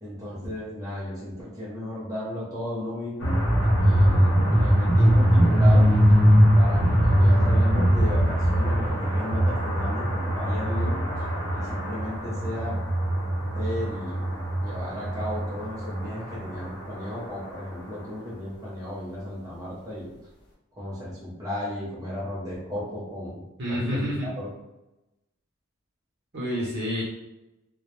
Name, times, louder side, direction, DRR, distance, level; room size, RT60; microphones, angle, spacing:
voice 1, 0.0-3.4 3.8-5.9 6.5-11.0 11.5-12.8 13.5-20.1 20.8-23.4 23.7-24.0 24.4-24.5, left 1 dB, 15° right, -8 dB, 0.8 m, -34 dB
sound 1, 3.2-17.1, equal, 50° left, 0.8 m, -21 dB
voice 2, 23.6-24.3 26.3-27.0, equal, 50° right, -6 dB, 0.8 m, -28 dB
2.2 x 2.1 x 3.1 m, 0.95 s
head